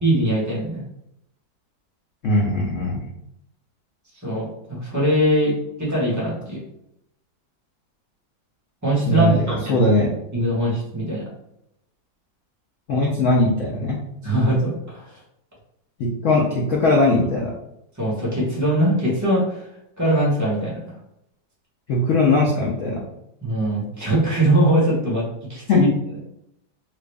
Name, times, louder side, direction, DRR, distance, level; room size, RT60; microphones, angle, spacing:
voice 1, 0.0-0.8 4.2-6.6 8.8-9.8 10.3-11.2 14.2-15.0 18.0-19.6 20.0-20.8 23.4-25.9, right 1 dB, 15° right, -6 dB, 0.8 m, -21 dB
voice 2, 2.2-3.0 9.1-10.1 12.9-14.0 16.0-17.5 21.9-23.0 25.7-25.8, left 2 dB, 80° left, -3 dB, 0.7 m, -20 dB
3.0 x 2.5 x 3.3 m, 0.81 s
omnidirectional pair, 2.1 m